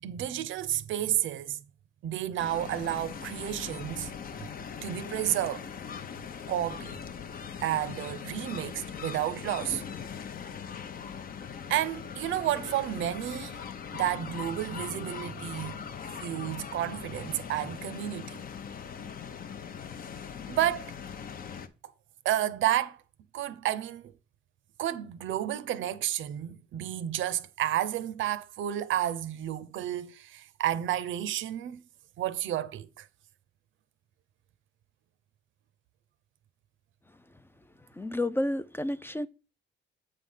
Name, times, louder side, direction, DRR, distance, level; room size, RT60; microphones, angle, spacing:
voice 1, 0.0-1.6 2.0-4.5 4.8-5.7 6.5-7.0 7.6-9.8 11.7-13.6 13.9-15.8 16.2-18.4 20.5-20.8 22.2-23.0 23.3-24.1 24.8-31.8 32.2-33.1, right 12 dB, 85° right, 0.6 m, -31 dB
sound 1, 2.4-21.7, left 7 dB, 50° left, 0.6 m, -41 dB
voice 2, 37.9-39.3, left 1 dB, 10° left, 0.3 m, -30 dB
8.1 x 3.4 x 5.5 m
cardioid pair, 115°, 20 cm